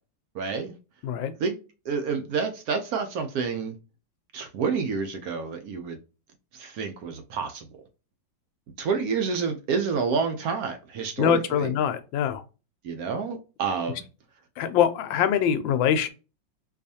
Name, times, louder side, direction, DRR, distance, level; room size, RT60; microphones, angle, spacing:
voice 1, 0.3-0.7 1.4-1.6 1.8-3.7 4.3-6.0 6.5-7.7 8.8-11.7 12.8-14.0, right 5 dB, 70° right, 0.9 m, -29 dB
voice 2, 11.2-12.4 14.6-16.1, left 9 dB, 85° left, 1.3 m, -23 dB
4.6 x 2.4 x 2.7 m
omnidirectional pair, 2.0 m